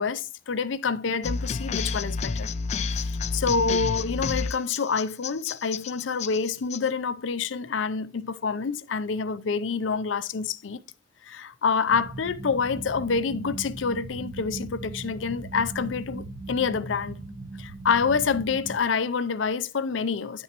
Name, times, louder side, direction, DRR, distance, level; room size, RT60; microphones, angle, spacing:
voice 1, 0.0-2.5 3.0-10.8 11.2-17.2 17.6-20.4, left 5 dB, 85° left, 0.5 m, -27 dB
sound 1, 1.2-6.8, left 4 dB, 35° left, 0.3 m, -30 dB
sound 2, 11.9-18.8, right 2 dB, 60° right, 1.1 m, -38 dB
9.9 x 6.1 x 2.9 m
head